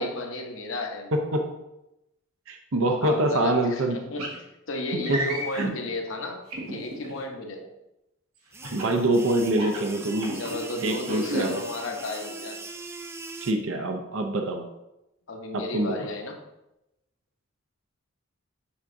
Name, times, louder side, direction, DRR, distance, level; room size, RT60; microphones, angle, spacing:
voice 1, 0.0-1.3 3.0-7.7 10.3-12.6 15.3-16.4, left 2 dB, 60° left, 2 dB, 0.9 m, -34 dB
voice 2, 1.1-1.5 2.5-4.0 5.1-5.3 5.5-5.7 8.7-10.4 10.8-11.5 13.4-14.7 15.5-16.0, right 1 dB, 70° right, 4 dB, 0.6 m, -25 dB
sound 1, 4.2-4.4 5.0-5.7 6.5-7.1 8.6-9.0 9.5-10.5 11.0-11.4, right 2 dB, 85° right, 1.6 m, -32 dB
sound 2, 8.5-13.5, right 3 dB, 10° right, 0.3 m, -41 dB
7.1 x 5.9 x 2.6 m, 0.90 s
head